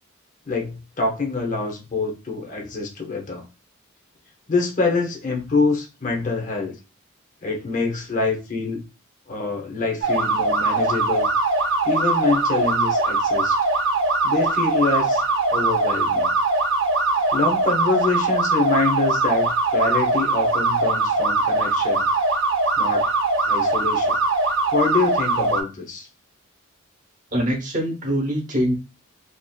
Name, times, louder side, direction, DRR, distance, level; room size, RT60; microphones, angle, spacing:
voice 1, 0.5-3.4 4.5-6.7 7.4-8.8 9.3-11.3 11.8-13.5 14.2-15.2 15.5-16.3 17.3-22.1 22.8-23.1 23.4-24.2 24.7-26.1, left 3 dB, 35° left, 1 dB, 0.7 m, -25 dB
sound 1, 10.0-25.6, right 2 dB, 60° right, 0.5 m, -21 dB
voice 2, 27.3-28.7, equal, 40° right, 0 dB, 0.8 m, -23 dB
2.5 x 2.4 x 2.2 m, 0.30 s
head